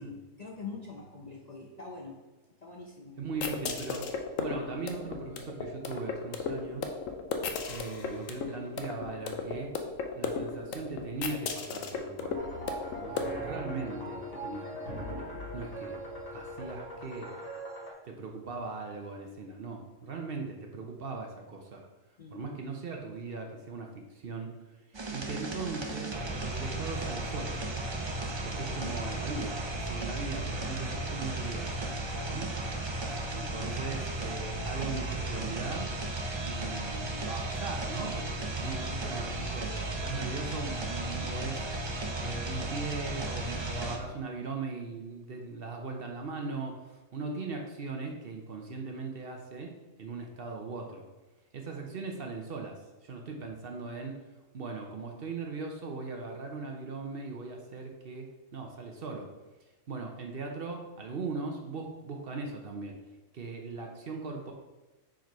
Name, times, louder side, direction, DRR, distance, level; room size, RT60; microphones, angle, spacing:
voice 1, 0.0-2.2 2.6-3.2 22.2-22.4, left 4 dB, 45° left, -1 dB, 0.6 m, -44 dB
voice 2, 3.2-4.0 4.4-6.9 7.7-9.7 10.1-12.6 13.0-16.0 16.3-17.3 18.0-21.9 22.3-24.5 24.9-27.6 28.4-31.9 32.2-32.5 32.9-33.0 33.3-35.9 36.4-39.7 40.0-41.7 42.2-51.1 51.5-54.2 54.5-59.3 59.9-63.0 63.3-64.5, right 4 dB, 50° right, 2 dB, 0.9 m, -39 dB
sound 1, 3.3-13.2, left 5 dB, 90° left, 1.1 m, -36 dB
sound 2, 12.3-17.9, right 1 dB, 60° left, 1.5 m, -40 dB
sound 3, 24.9-44.0, right 2 dB, 35° right, 0.5 m, -35 dB
4.8 x 4.5 x 4.6 m, 1.1 s
omnidirectional pair, 1.3 m